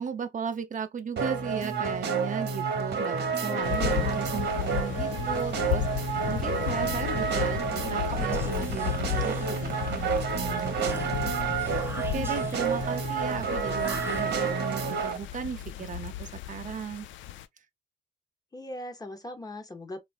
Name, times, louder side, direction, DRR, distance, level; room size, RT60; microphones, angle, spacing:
voice 1, 0.0-11.3 11.6-17.1, right 7 dB, 40° right, 0.6 m, -36 dB
sound 1, 1.2-15.2, right 5 dB, 55° right, 0.9 m, -29 dB
voice 2, 3.5-4.2 18.5-20.0, left 1 dB, 20° left, 0.9 m, -39 dB
sound 2, 3.6-17.4, left 13 dB, 70° left, 0.4 m, -34 dB
Whispering, 8.1-10.1 10.8-12.9 13.7-14.8, right 2 dB, 10° right, 0.8 m, -44 dB
3.1 x 2.4 x 2.4 m
cardioid pair, 90°, 20 cm